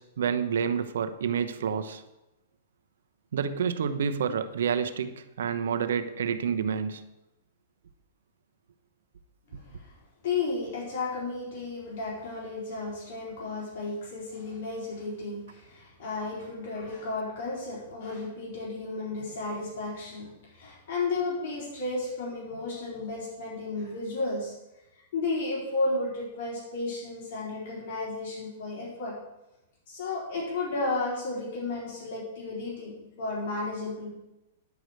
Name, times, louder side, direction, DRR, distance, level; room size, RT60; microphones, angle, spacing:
voice 1, 0.0-2.0 3.3-7.0, right 7 dB, 80° right, 0.9 m, -29 dB
voice 2, 9.5-9.9 10.2-24.5 25.1-29.2 29.9-34.1, left 3 dB, 60° left, 4.1 m, -33 dB
10.5 x 5.0 x 7.8 m
hypercardioid pair, 150°, 0 cm